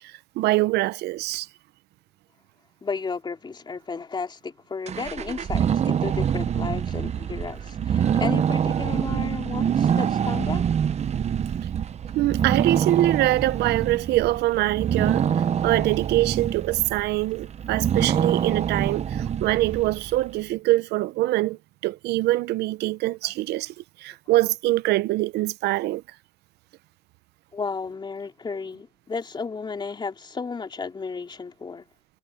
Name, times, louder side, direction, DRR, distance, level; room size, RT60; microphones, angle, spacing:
voice 1, 0.0-1.5 8.0-8.1 12.1-15.3 15.6-26.0, right 17 dB, 80° right, 0.8 m, -24 dB
voice 2, 2.8-10.7 23.2-23.3 27.5-31.8, left 4 dB, 25° left, 3.3 m, -33 dB
sound 1, 4.9-20.3, right 8 dB, 40° right, 0.9 m, -25 dB
cardioid pair, 110°, 17 cm